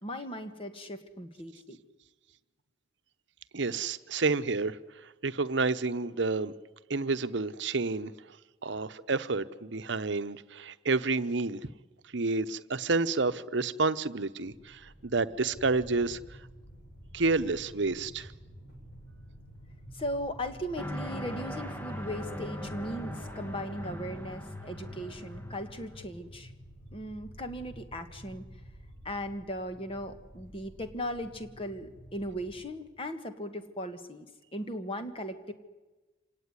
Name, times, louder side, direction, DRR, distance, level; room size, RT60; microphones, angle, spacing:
voice 1, 0.0-1.8 19.9-26.5 26.9-28.4 29.0-34.3 34.5-35.5, equal, 30° left, 8 dB, 1.7 m, -38 dB
voice 2, 3.5-4.8 5.2-6.5 6.9-8.1 8.6-11.6 12.1-16.2 17.1-18.3, right 3 dB, 70° right, 12 dB, 0.9 m, -29 dB
sound 1, 14.4-32.6, equal, 55° left, 7.0 m, -50 dB
sound 2, 20.8-26.0, left 1 dB, 10° left, 1.7 m, -40 dB
26.5 x 18.0 x 9.7 m, 1.2 s
head